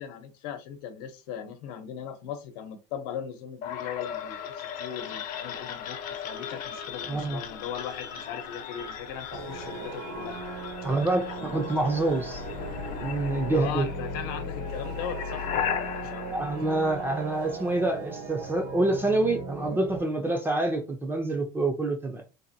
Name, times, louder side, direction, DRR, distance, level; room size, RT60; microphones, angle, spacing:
voice 1, 0.0-10.4 10.8-10.9 11.4-11.6 13.3-16.4, left 8 dB, 75° left, 0.8 m, -39 dB
sound 1, 3.6-17.5, left 8 dB, 45° left, 0.7 m, -37 dB
voice 2, 7.1-7.4 10.8-12.4 13.0-13.9 16.3-22.2, right 2 dB, 10° right, 0.4 m, -27 dB
sound 2, 9.3-20.0, right 4 dB, 80° right, 1.1 m, -38 dB
3.9 x 2.5 x 2.6 m
cardioid pair, 155°, 19 cm